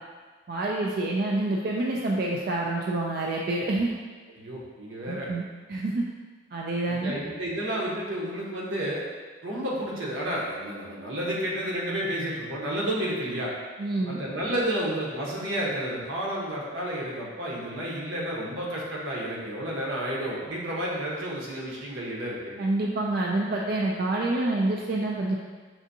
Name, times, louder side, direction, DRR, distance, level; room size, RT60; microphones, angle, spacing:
voice 1, 0.5-3.9 5.1-5.4 5.7-6.1 6.5-7.1 13.8-14.2 22.6-25.4, right 2 dB, 50° right, -2 dB, 0.3 m, -27 dB
voice 2, 4.4-5.3 6.9-9.0 9.4-13.5 14.1-22.5, right 1 dB, 85° right, -4 dB, 1.0 m, -31 dB
5.9 x 2.6 x 2.6 m, 1.4 s
head